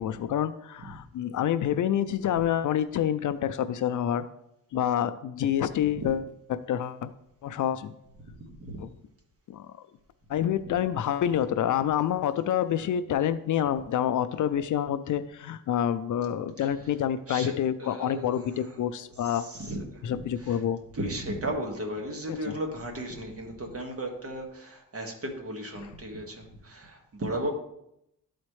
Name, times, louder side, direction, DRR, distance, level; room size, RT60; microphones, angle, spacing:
voice 1, 0.0-4.3 4.7-6.2 6.5-7.1 7.4-7.9 8.8-8.9 9.5-9.7 10.3-19.5 20.0-20.8 22.3-22.6, left 10 dB, 60° left, 12 dB, 0.4 m, -27 dB
voice 2, 5.8-6.1 8.4-8.8 10.7-10.8 16.6-17.5 17.8-20.6 20.9-27.5, right 1 dB, 40° right, 1 dB, 1.7 m, -36 dB
12.5 x 4.2 x 3.1 m, 0.80 s
cardioid pair, 105°, 35 cm